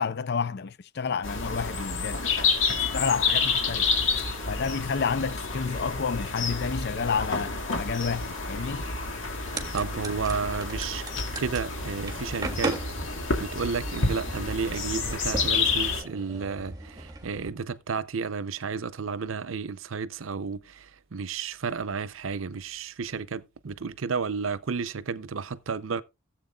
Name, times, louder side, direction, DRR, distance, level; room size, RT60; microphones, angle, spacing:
voice 1, 0.0-2.2 2.7-3.9 4.5-8.9, left 5 dB, 55° left, 0.5 m, -30 dB
sound 1, 1.2-16.0, left 4 dB, 75° left, 2.1 m, -29 dB
sound 2, 9.4-17.5, right 2 dB, 20° right, 1.6 m, -38 dB
voice 2, 9.7-11.0 11.4-12.8 13.4-26.0, right 5 dB, 90° right, 0.7 m, -32 dB
16.5 x 7.8 x 2.4 m
head